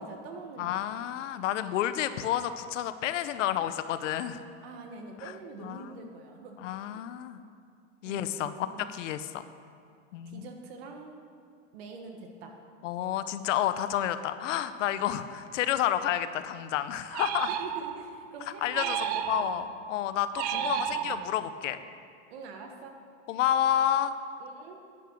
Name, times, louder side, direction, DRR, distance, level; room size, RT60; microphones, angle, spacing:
voice 1, 0.0-0.8 4.6-7.0 8.0-8.9 10.2-11.2 11.7-12.6 17.5-19.4 20.3-21.2 22.3-23.0 24.4-24.8, right 4 dB, 50° right, 3 dB, 1.6 m, -45 dB
voice 2, 0.6-4.4 5.6-6.1 6.6-7.4 8.0-9.4 10.1-10.5 12.8-17.5 18.6-19.0 19.3-21.8 23.3-24.1, left 11 dB, 70° left, 12 dB, 0.8 m, -30 dB
sound 1, 17.1-18.2 18.7-19.8 20.3-21.5, right 10 dB, 35° right, 0.4 m, -32 dB
10.0 x 9.9 x 6.3 m, 2.4 s
supercardioid pair, 170°, 38 cm